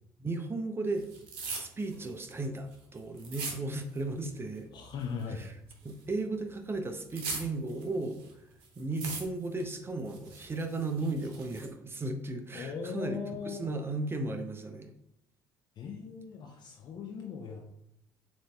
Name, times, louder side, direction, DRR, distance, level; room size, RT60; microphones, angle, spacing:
voice 1, 0.2-1.1 1.5-4.7 5.3-5.5 5.8-8.2 8.8-13.2 13.5-14.9, right 2 dB, 25° right, 6 dB, 0.6 m, -35 dB
sound 1, 1.0-4.2 4.5-6.1 6.5-8.3 8.6-9.6 10.0-11.7, right 4 dB, 70° right, 0.8 m, -41 dB
voice 2, 4.7-5.4 12.5-13.7 15.8-17.6, left 6 dB, 50° left, 1 dB, 0.6 m, -39 dB
7.1 x 2.6 x 2.3 m, 0.77 s
hypercardioid pair, 55°, 9 cm